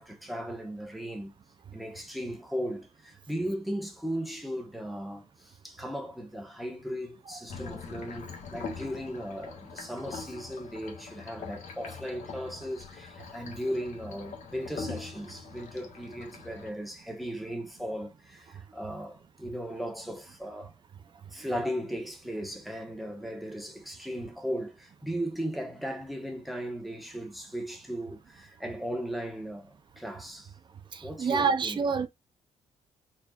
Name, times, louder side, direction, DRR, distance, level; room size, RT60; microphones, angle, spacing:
voice 1, 0.0-1.3 1.7-20.7 21.2-30.5 31.0-31.8, equal, ahead, 1.3 m, -37 dB
sound 1, 7.5-16.7, left 5 dB, 60° left, 1.6 m, -43 dB
voice 2, 30.9-32.1, right 5 dB, 35° right, 0.7 m, -27 dB
4.5 x 4.4 x 2.5 m
cardioid pair, 135°, 14 cm